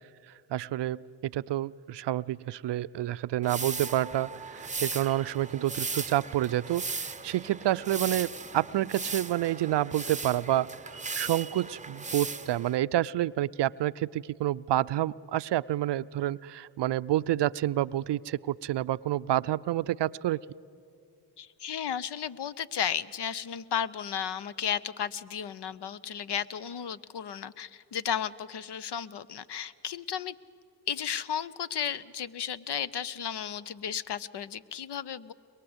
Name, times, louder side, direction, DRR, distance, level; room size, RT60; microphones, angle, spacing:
voice 1, 0.5-20.4, right 14 dB, 60° right, 16 dB, 0.6 m, -29 dB
sound 1, 3.4-12.8, right 4 dB, 15° right, 0.8 m, -37 dB
voice 2, 21.4-30.3 30.9-35.3, left 8 dB, 55° left, 16 dB, 0.8 m, -34 dB
22.5 x 22.0 x 8.0 m, 2.4 s
supercardioid pair, 50°, 49 cm